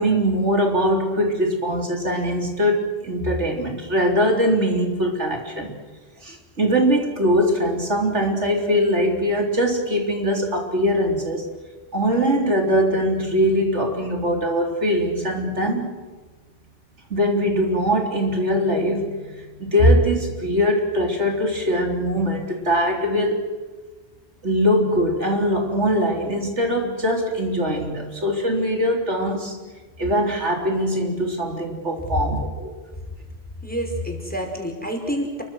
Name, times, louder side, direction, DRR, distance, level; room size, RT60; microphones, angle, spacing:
voice 1, 0.0-5.8 6.2-11.5 11.9-15.9 17.1-23.5 24.4-29.6 30.0-32.7, equal, 80° right, 2 dB, 4.2 m, -21 dB
voice 2, 32.1-32.4 33.6-35.4, equal, 10° left, 2 dB, 5.2 m, -27 dB
29.5 x 23.0 x 6.3 m, 1.3 s
omnidirectional pair, 1.2 m